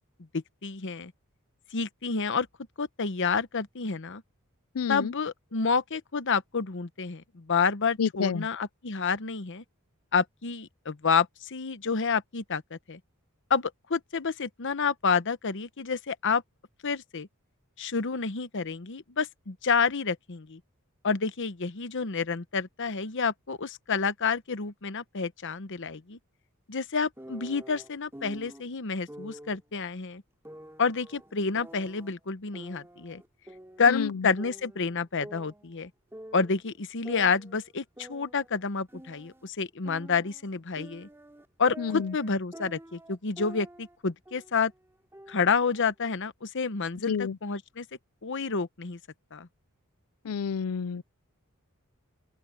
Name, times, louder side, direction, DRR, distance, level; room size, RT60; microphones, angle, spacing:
voice 1, 0.3-1.1 1.7-2.5 2.8-4.2 4.9-9.6 10.1-13.0 13.5-16.4 16.8-17.3 17.8-20.6 21.0-26.2 26.7-30.2 30.8-33.2 33.8-35.9 36.3-41.1 41.6-44.7 45.3-47.8 48.2-49.0 49.3-49.5, left 5 dB, 55° left, 1.0 m, -29 dB
voice 2, 4.7-5.1 8.0-8.5 33.9-34.3 41.8-42.1 47.1-47.4 50.2-51.0, left 6 dB, 80° left, 0.5 m, -29 dB
sound 1, 27.2-28.6 29.1-29.6 30.4-32.1 32.5-34.1 34.4-36.6 37.0-39.5 39.8-44.0 44.2-44.6 45.1-46.1, right 1 dB, 10° right, 2.7 m, -47 dB
open air
head